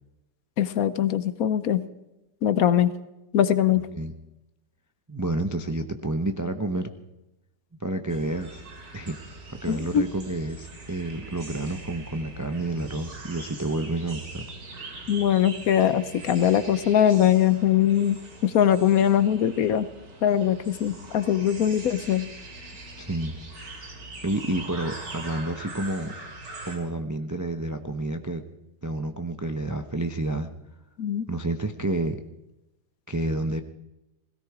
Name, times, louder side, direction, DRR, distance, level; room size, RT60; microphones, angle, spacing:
voice 1, 0.6-1.8 2.4-2.9 3.3-3.9 9.7-10.1 15.1-19.9 20.2-22.3 31.0-31.2, left 10 dB, 65° left, 14 dB, 1.1 m, -22 dB
voice 2, 5.1-6.9 7.8-8.6 8.9-9.2 9.5-14.5 23.0-23.4 24.2-26.1 26.7-28.4 28.8-30.5 31.3-32.2 33.1-33.6, right 2 dB, 30° right, 7 dB, 0.3 m, -29 dB
sound 1, 8.1-26.8, right 2 dB, 90° right, 3.4 m, -42 dB
17.0 x 17.0 x 4.8 m, 0.95 s
omnidirectional pair, 1.8 m